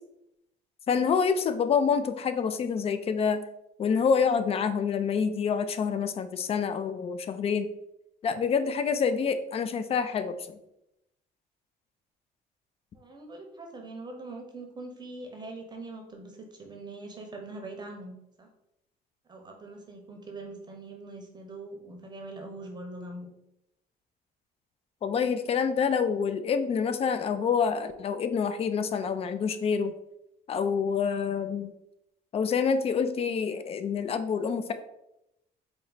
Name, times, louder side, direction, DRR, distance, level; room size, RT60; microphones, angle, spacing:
voice 1, 0.9-3.4 3.8-7.7 8.2-10.4 25.0-29.9 30.5-31.7 32.3-34.7, left 6 dB, 35° left, 10 dB, 0.4 m, -27 dB
voice 2, 12.9-18.5 19.3-23.3, right 2 dB, 25° right, 2 dB, 0.7 m, -42 dB
4.4 x 2.1 x 3.9 m, 0.85 s
cardioid pair, 110°, 17 cm